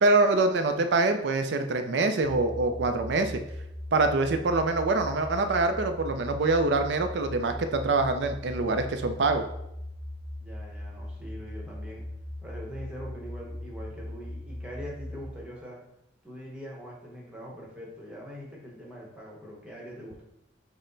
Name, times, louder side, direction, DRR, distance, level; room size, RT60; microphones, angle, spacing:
voice 1, 0.0-3.4 3.9-9.4, right 3 dB, 65° right, 7 dB, 0.4 m, -25 dB
sound 1, 2.2-15.3, left 1 dB, 20° left, 0.3 m, -39 dB
voice 2, 10.4-12.0 12.4-15.8 16.2-20.2, equal, 5° right, -4 dB, 1.0 m, -43 dB
6.2 x 2.1 x 3.9 m, 0.82 s
head